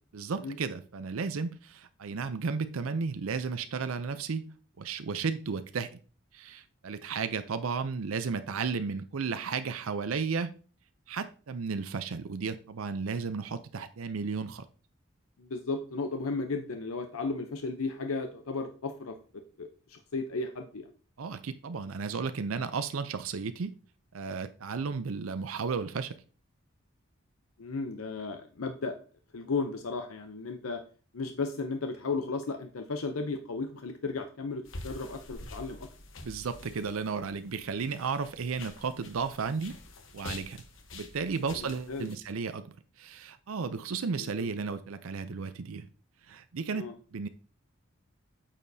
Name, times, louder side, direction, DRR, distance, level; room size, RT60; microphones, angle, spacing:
voice 1, 0.1-5.9 6.3-10.5 11.1-14.7 21.2-23.7 24.1-26.1 36.2-39.8 40.1-40.6 40.9-42.7 43.0-45.9 46.3-46.9 47.1-47.3, right 5 dB, 80° right, 0.5 m, -34 dB
voice 2, 15.4-19.2 19.6-20.9 27.6-28.9 29.3-30.8 31.1-35.9 41.6-42.1 44.2-44.5 46.7-47.0, left 3 dB, 85° left, 0.7 m, -35 dB
sound 1, 34.7-42.2, left 2 dB, 65° left, 1.1 m, -47 dB
8.9 x 6.6 x 2.7 m
head